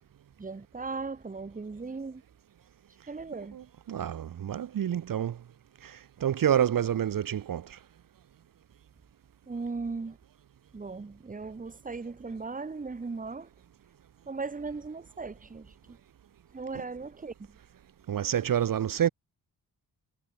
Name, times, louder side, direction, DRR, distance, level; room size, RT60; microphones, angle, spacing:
voice 1, 0.4-2.2 3.1-3.6 9.5-10.2 10.7-13.5 14.3-16.0 16.5-17.6, right 4 dB, 20° right, 1.8 m, -38 dB
voice 2, 3.5-5.4 5.8-7.8 18.1-19.1, right 10 dB, 60° right, 1.2 m, -28 dB
wide cardioid pair, 145°, 37 cm